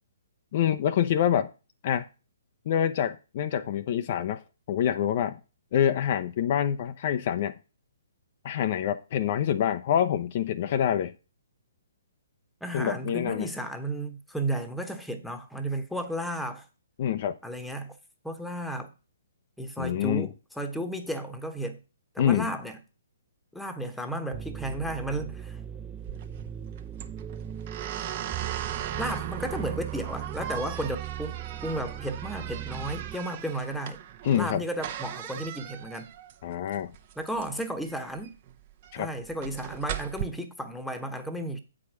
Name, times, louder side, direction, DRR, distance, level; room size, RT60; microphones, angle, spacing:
voice 1, 0.5-1.5 1.8-2.1 2.7-4.4 4.7-5.4 5.7-7.5 8.4-11.1 12.7-13.5 17.0-17.4 19.8-20.3 22.2-22.5 34.2-34.6 36.4-36.9 38.9-39.1, left 9 dB, 45° left, 0.6 m, -26 dB
voice 2, 12.6-16.6 17.4-18.0 18.2-18.9 19.6-21.8 22.1-22.8 23.5-25.6 29.0-31.4 31.6-34.0 34.3-36.1 37.2-38.4 39.0-41.6, right 1 dB, ahead, 1.2 m, -33 dB
sound 1, 24.3-33.2, right 10 dB, 15° right, 0.3 m, -38 dB
sound 2, 26.0-40.2, right 11 dB, 40° right, 1.0 m, -39 dB
8.3 x 4.9 x 6.1 m
figure-of-eight pair, 135°, 0 cm